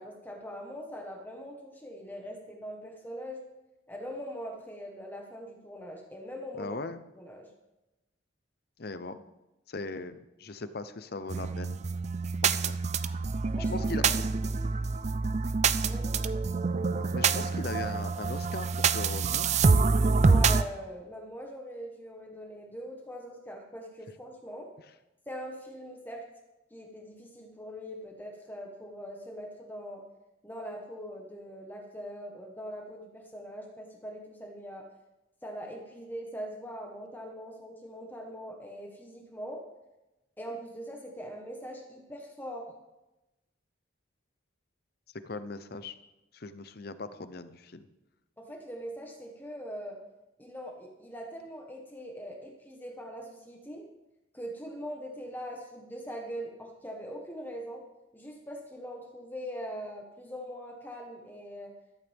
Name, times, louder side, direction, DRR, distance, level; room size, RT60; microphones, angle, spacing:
voice 1, 0.0-3.4 3.9-6.7 7.1-7.5 13.5-14.1 15.9-16.2 20.2-24.7 25.3-26.2 26.7-30.0 30.4-34.9 35.4-39.6 40.4-42.7 48.4-50.0 50.4-53.8 54.3-57.8 58.1-61.7, equal, 10° left, 1 dB, 1.4 m, -42 dB
voice 2, 6.5-7.0 8.8-9.2 9.7-11.8 12.4-12.7 13.6-14.2 16.9-19.5 45.2-46.0 46.3-47.9, left 3 dB, 55° left, 12 dB, 0.8 m, -39 dB
sound 1, 11.3-20.6, right 4 dB, 35° right, 0.4 m, -26 dB
14.5 x 13.0 x 3.6 m, 1.0 s
head